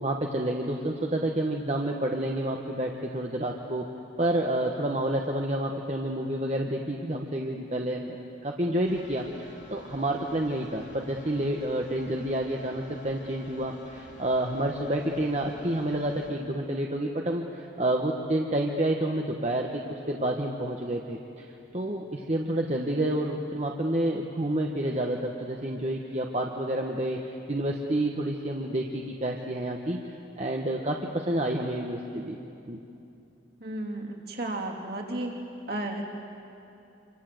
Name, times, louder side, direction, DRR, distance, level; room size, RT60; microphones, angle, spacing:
voice 1, 0.0-3.8 4.2-8.2 8.4-19.8 20.1-21.5 21.7-30.0 30.4-32.4 32.7-32.8, right 1 dB, 35° right, 1 dB, 1.3 m, -29 dB
sound 1, 8.8-16.3, left 2 dB, 70° left, 3.4 m, -49 dB
voice 2, 33.6-35.4 35.7-36.0, right 1 dB, 55° right, -1 dB, 3.4 m, -33 dB
26.5 x 26.0 x 7.9 m, 2.7 s
head